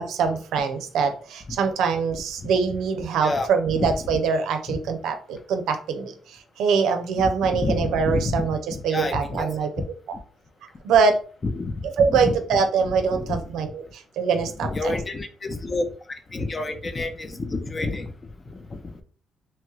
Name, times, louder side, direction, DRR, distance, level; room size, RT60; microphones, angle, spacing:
voice 1, 0.0-9.7 10.8-11.2 12.0-14.7, right 5 dB, 80° right, 7 dB, 0.5 m, -23 dB
voice 2, 7.2-8.5 8.9-9.5 11.4-12.3 13.1-13.4 14.6-18.1 18.5-19.0, left 2 dB, 35° left, 7 dB, 0.6 m, -29 dB
2.9 x 2.2 x 3.1 m, 0.41 s
supercardioid pair, 70°, 0 cm